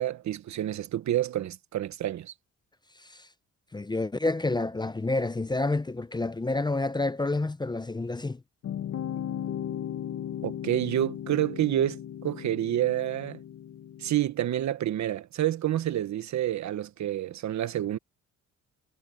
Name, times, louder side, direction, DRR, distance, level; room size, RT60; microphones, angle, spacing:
voice 1, 0.0-2.3 10.4-13.4 14.0-18.0, right 12 dB, 65° right, 1.4 m, -28 dB
voice 2, 3.7-8.4, left 2 dB, 15° left, 0.7 m, -29 dB
sound 1, 8.6-14.1, left 10 dB, 60° left, 1.0 m, -36 dB
cardioid pair, 90°, 30 cm